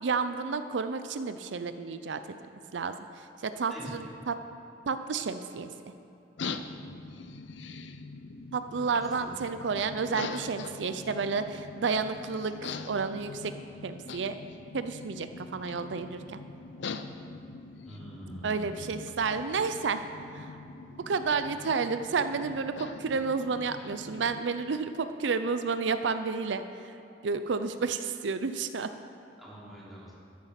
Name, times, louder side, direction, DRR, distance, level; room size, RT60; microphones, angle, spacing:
voice 1, 0.0-2.4 2.7-4.3 4.9-5.7 8.5-13.5 13.8-14.4 14.7-16.4 18.4-20.0 20.3-20.5 21.1-26.8 27.2-28.9, right 5 dB, 80° right, 10 dB, 0.5 m, -31 dB
voice 2, 3.7-4.1 8.9-9.6 17.8-19.0 29.4-30.1, equal, ahead, -9 dB, 3.8 m, -45 dB
sound 1, 6.4-24.5, left 4 dB, 75° left, 0.6 m, -43 dB
13.0 x 10.5 x 5.8 m, 2.8 s
head